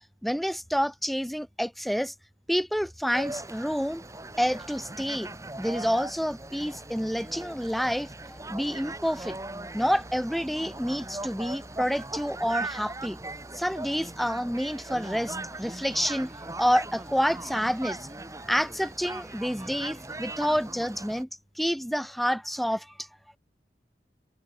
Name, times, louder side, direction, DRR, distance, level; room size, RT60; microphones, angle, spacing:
voice 1, 0.2-2.1 2.5-4.0 4.4-9.4 9.7-13.2 13.5-16.3 16.6-18.1 18.4-21.3 21.5-23.1, equal, ahead, 1.3 m, -28 dB
sound 1, 3.1-21.2, right 2 dB, 15° right, 1.8 m, -39 dB
head